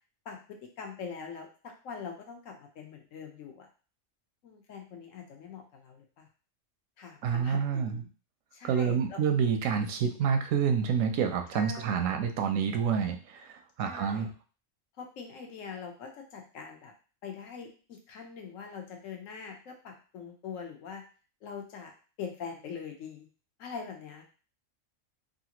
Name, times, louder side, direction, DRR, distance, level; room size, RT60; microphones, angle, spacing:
voice 1, 0.2-3.7 4.4-6.3 7.0-8.1 8.5-9.2 11.5-12.1 13.8-14.3 15.0-16.9 17.2-21.0 21.4-21.9 22.2-23.3 23.6-24.2, left 6 dB, 75° left, 2 dB, 1.1 m, -43 dB
voice 2, 7.2-8.0 8.6-13.5 13.8-14.3, right 7 dB, 85° right, 6 dB, 1.0 m, -28 dB
3.2 x 2.5 x 2.9 m, 0.36 s
omnidirectional pair, 1.4 m